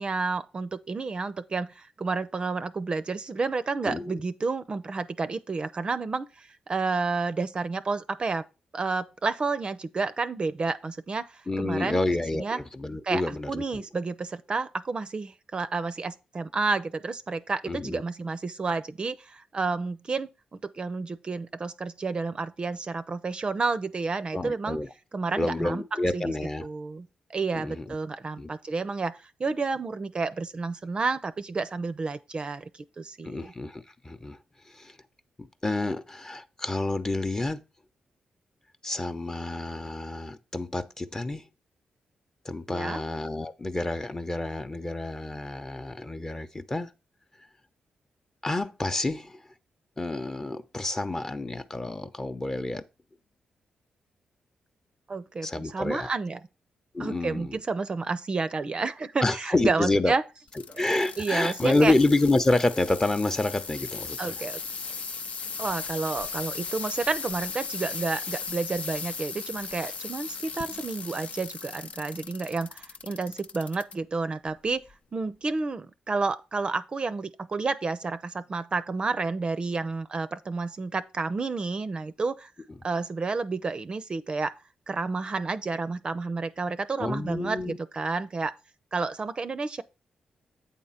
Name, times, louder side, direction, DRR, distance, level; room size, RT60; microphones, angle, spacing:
voice 1, 0.0-8.5 8.7-12.0 12.3-12.6 13.0-24.8 25.1-25.8 26.1-26.3 26.6-32.7 33.0-33.5 42.7-43.0 55.1-56.4 57.0-60.2 60.7-60.8 61.2-61.9 64.2-64.6 65.6-74.8 75.1-82.5 82.8-84.5 84.9-88.5 88.9-89.8, right 4 dB, 40° right, 0.5 m, -30 dB
voice 2, 3.8-4.2 11.5-13.6 17.6-18.0 24.3-24.9 25.4-26.7 27.5-27.9 28.4-28.5 33.2-34.4 34.7-34.9 35.4-37.6 38.8-41.5 42.4-46.9 48.4-49.4 50.0-52.8 55.4-56.1 56.9-57.6 59.2-60.1 60.8-64.3 87.0-87.8, left 2 dB, 20° left, 0.8 m, -28 dB
sound 1, 60.5-73.9 74.5-74.9 75.6-75.7, left 5 dB, 60° left, 0.6 m, -37 dB
8.5 x 3.6 x 5.6 m
cardioid pair, 65°, 3 cm